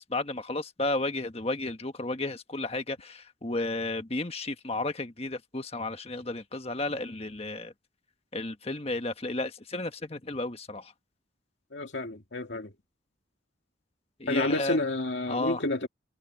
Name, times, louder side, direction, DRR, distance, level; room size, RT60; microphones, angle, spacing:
voice 1, 0.0-7.7 8.3-10.9 14.2-14.8 15.3-15.6, left 2 dB, 30° left, 1.4 m, -33 dB
voice 2, 11.7-12.7 14.3-15.9, left 2 dB, 70° left, 2.3 m, -30 dB
head